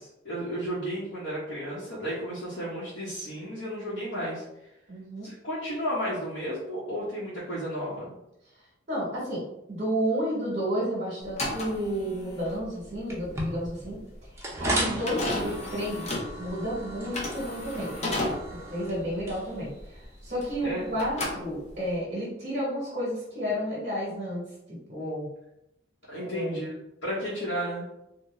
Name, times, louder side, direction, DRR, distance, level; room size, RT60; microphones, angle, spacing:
voice 1, 0.0-4.4 5.2-8.1 20.6-20.9 26.1-26.7 27.0-27.9, equal, 80° left, -8 dB, 1.0 m, -33 dB
voice 2, 4.9-5.3 8.9-9.4 9.7-14.0 14.3-16.1 16.4-18.1 18.5-24.4 24.9-25.3 26.2-26.7, equal, 40° right, -6 dB, 1.1 m, -31 dB
sound 1, 11.2-20.7 21.0-22.0, left 1 dB, 35° left, 0.7 m, -34 dB
sound 2, 13.1-21.0, right 1 dB, 15° right, 0.7 m, -36 dB
3.8 x 2.2 x 3.2 m, 0.87 s
head